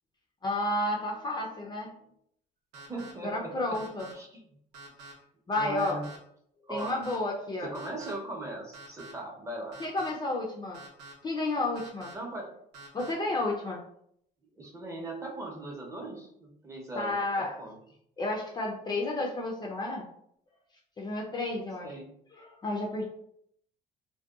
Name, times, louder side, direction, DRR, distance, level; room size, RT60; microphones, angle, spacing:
voice 1, 0.4-1.9 3.2-4.1 5.5-6.0 6.7-7.7 9.8-10.8 11.2-12.1 12.9-13.8 16.9-17.6 18.2-20.1 21.0-21.9 22.3-23.0, left 2 dB, 25° left, -2 dB, 0.4 m, -31 dB
sound 1, 2.7-3.1 3.7-4.1 4.7-5.1 5.8-6.2 6.8-7.2 7.7-8.1 8.7-9.1 9.7-10.1 10.7-11.1 11.8-12.1 12.7-13.1, right 3 dB, 90° right, 0.7 m, -47 dB
voice 2, 2.9-3.8 4.1-4.4 5.5-6.1 6.7-7.0 7.6-9.7 12.1-12.5 14.4-17.8 21.8-22.1, right 2 dB, 20° right, -1 dB, 0.6 m, -39 dB
2.7 x 2.2 x 2.3 m, 0.70 s
cardioid pair, 110°, 17 cm